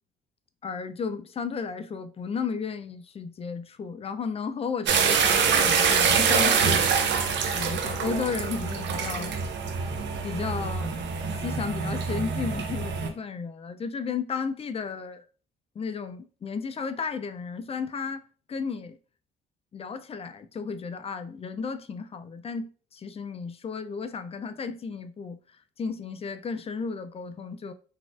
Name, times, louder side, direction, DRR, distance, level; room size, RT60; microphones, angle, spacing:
voice 1, 0.6-6.9 7.5-9.3 10.2-11.0 11.4-15.2 15.8-18.2 18.5-19.0 19.7-25.4 25.8-27.7, left 5 dB, 30° left, 0.3 m, -33 dB
sound 1, 4.9-13.1, right 6 dB, 65° right, 0.6 m, -25 dB
4.0 x 2.4 x 2.4 m
cardioid pair, 90°, 20 cm